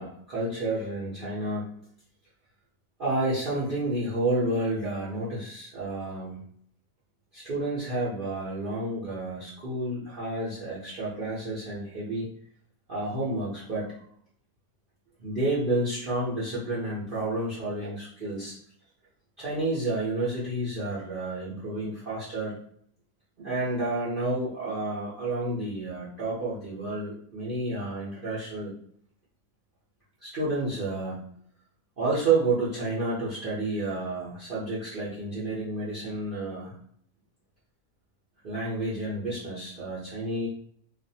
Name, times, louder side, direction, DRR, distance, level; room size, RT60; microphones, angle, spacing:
voice 1, 0.0-1.7 3.0-6.4 7.3-12.3 12.9-13.9 15.2-18.6 19.4-22.6 23.4-28.7 30.2-31.2 32.0-36.7 38.4-40.5, right 2 dB, 45° right, -9 dB, 0.8 m, -30 dB
2.5 x 2.4 x 2.7 m, 0.63 s
omnidirectional pair, 1.6 m